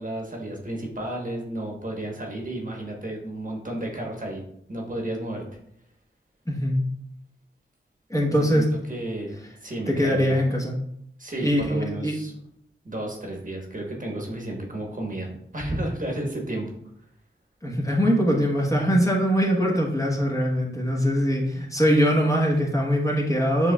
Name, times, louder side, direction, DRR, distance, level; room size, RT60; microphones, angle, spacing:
voice 1, 0.0-4.4 4.7-5.4 8.4-10.4 11.2-12.3 12.8-16.7, right 1 dB, 40° right, 0 dB, 1.1 m, -32 dB
voice 2, 6.5-6.8 8.1-8.7 9.9-10.7 11.4-12.1 17.6-23.7, equal, 15° left, -2 dB, 1.1 m, -22 dB
6.6 x 3.1 x 2.3 m, 0.71 s
cardioid pair, 55°, 21 cm